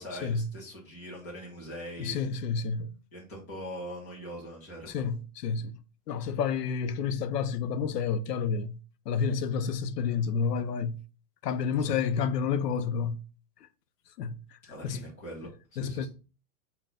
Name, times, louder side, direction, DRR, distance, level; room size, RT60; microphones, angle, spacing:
voice 1, 0.0-2.2 3.1-5.0 11.7-12.0 14.6-16.1, equal, 10° left, 0.5 m, -42 dB
voice 2, 2.0-2.9 4.9-5.8 6.1-8.8 9.1-11.0 11.4-13.2 14.2-14.4 14.8-15.1 15.8-16.1, left 6 dB, 90° left, 0.7 m, -29 dB
5.6 x 2.3 x 3.6 m
supercardioid pair, 170°, 47 cm